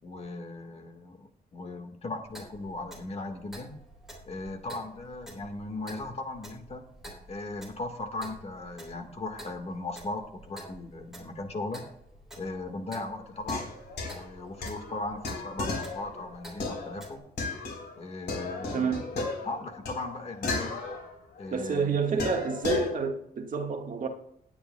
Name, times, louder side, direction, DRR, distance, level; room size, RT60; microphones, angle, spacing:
voice 1, 0.0-3.7 4.2-6.9 7.3-11.8 12.4-13.7 14.1-17.2 17.9-20.8 21.4-22.0, left 2 dB, 40° left, 1.6 m, -38 dB
Clock, 2.3-17.2, right 1 dB, ahead, 3.5 m, -49 dB
sound 1, 13.4-18.0 18.3-21.5 22.2-22.9, left 3 dB, 85° left, 4.0 m, -35 dB
voice 2, 18.7-19.1 21.5-24.1, right 5 dB, 55° right, 1.6 m, -29 dB
19.0 x 10.0 x 2.2 m
wide cardioid pair, 175°, 17 cm